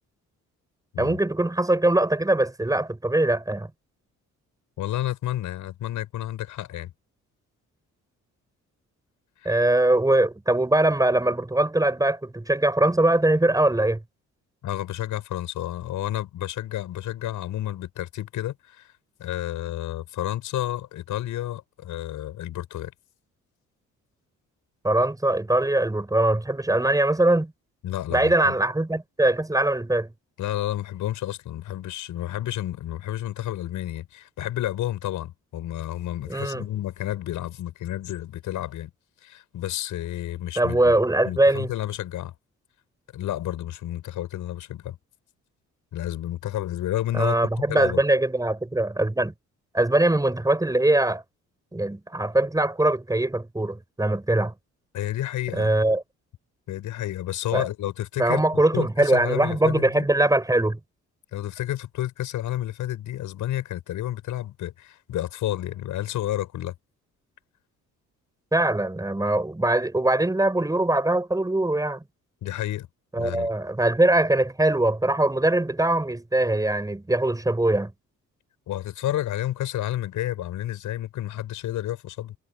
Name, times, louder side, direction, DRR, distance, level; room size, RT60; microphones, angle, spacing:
voice 1, 1.0-3.7 9.5-14.0 24.8-27.5 28.1-30.1 36.3-36.7 40.6-41.7 47.1-49.3 49.7-51.2 51.7-54.5 55.5-56.0 57.5-57.7 58.2-60.8 68.5-72.0 73.1-77.9, right 1 dB, 10° right, 5.4 m, -22 dB
voice 2, 4.8-6.9 9.4-9.6 14.6-18.9 19.2-22.9 27.8-28.6 30.4-38.9 39.2-41.0 41.2-42.3 43.1-45.0 45.9-47.4 47.7-48.0 54.9-55.7 56.7-60.1 61.3-66.7 72.4-72.9 73.2-73.5 78.7-82.4, left 13 dB, 80° left, 7.4 m, -30 dB
cardioid pair, 90°, 30 cm